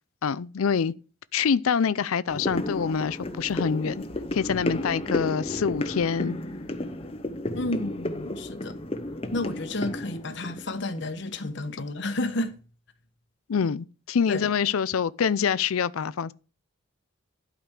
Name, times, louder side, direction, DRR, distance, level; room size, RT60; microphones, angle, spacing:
voice 1, 0.2-0.9 1.3-4.0 4.3-6.4 13.5-16.3, left 6 dB, 85° left, 0.5 m, -25 dB
sound 1, 2.3-11.6 12.0-12.1, left 1 dB, 25° left, 0.8 m, -33 dB
voice 2, 7.5-8.8 9.3-12.6 14.3-14.5, left 2 dB, 55° left, 1.1 m, -31 dB
12.0 x 5.1 x 6.5 m
head